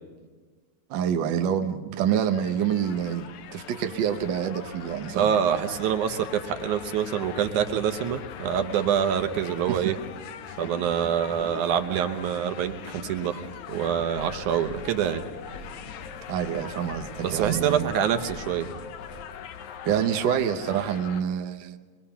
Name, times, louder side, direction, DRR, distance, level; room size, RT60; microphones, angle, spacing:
voice 1, 0.9-5.3 9.7-9.9 16.3-17.9 19.8-21.8, right 9 dB, 70° right, 1.1 m, -27 dB
sound 1, 2.1-21.2, left 8 dB, 75° left, 2.2 m, -41 dB
voice 2, 5.1-10.0 10.6-13.4 13.7-15.2 17.2-18.7, right 8 dB, 90° right, 2.5 m, -26 dB
sound 2, 14.2-19.2, left 2 dB, 55° left, 6.6 m, -45 dB
24.5 x 21.5 x 5.7 m
omnidirectional pair, 3.4 m